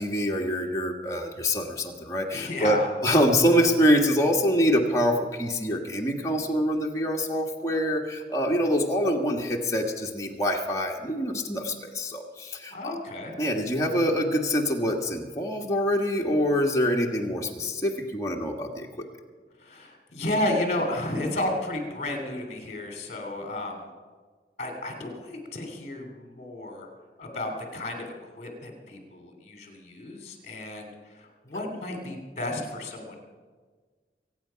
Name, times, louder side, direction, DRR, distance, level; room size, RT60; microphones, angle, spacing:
voice 1, 0.0-13.0 13.4-18.9, equal, 20° left, -1 dB, 1.5 m, -25 dB
voice 2, 2.3-2.9 12.7-13.3 19.6-23.9 24.6-26.9 27.2-33.2, left 1 dB, 40° left, 3 dB, 2.8 m, -32 dB
24.0 x 8.9 x 5.7 m, 1.5 s
head